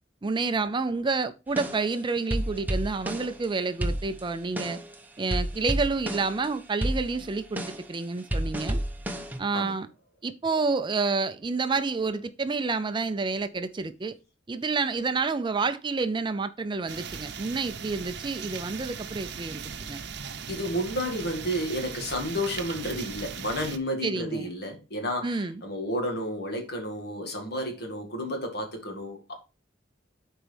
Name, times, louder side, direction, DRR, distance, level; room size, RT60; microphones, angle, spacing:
voice 1, 0.2-4.8 5.2-7.6 7.9-8.8 9.4-9.9 10.2-14.2 14.5-20.0 24.0-24.5 25.2-25.6, right 4 dB, 25° right, 0.4 m, -29 dB
sound 1, 1.5-3.5 3.8-5.0 5.2-6.5 6.8-9.4, right 1 dB, 10° right, 0.9 m, -31 dB
sound 2, 16.9-23.8, right 6 dB, 60° right, 0.8 m, -38 dB
voice 2, 20.5-29.3, equal, 60° left, 2.1 m, -31 dB
11.0 x 4.6 x 3.4 m
head